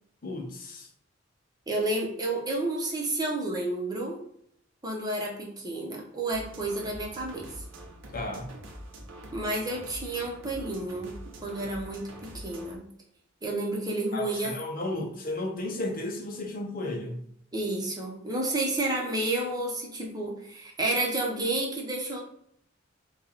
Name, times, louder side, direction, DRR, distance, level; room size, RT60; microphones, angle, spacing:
voice 1, 0.2-0.9 8.1-8.5 14.1-17.2, left 2 dB, 45° left, 2 dB, 0.7 m, -34 dB
voice 2, 1.7-4.2 4.8-7.4 9.3-11.1 11.4-12.9 13.4-14.5 14.9-15.1 17.5-22.2, right 2 dB, 20° right, -1 dB, 0.9 m, -30 dB
sound 1, 6.3-12.8, right 1 dB, 85° right, 0.8 m, -44 dB
4.4 x 2.3 x 4.1 m, 0.68 s
head